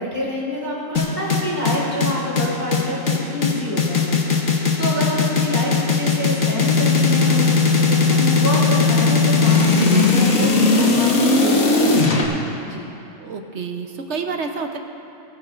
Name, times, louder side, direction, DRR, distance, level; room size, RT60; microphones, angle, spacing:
voice 1, 0.0-12.4 12.6-12.8, left 1 dB, 40° right, -6 dB, 3.4 m, -27 dB
sound 1, 1.0-12.2, left 4 dB, 70° left, 1.7 m, -17 dB
voice 2, 9.8-10.2 13.2-14.8, right 5 dB, 60° right, 4 dB, 1.1 m, -27 dB
19.0 x 14.5 x 2.5 m, 2.7 s
omnidirectional pair, 1.5 m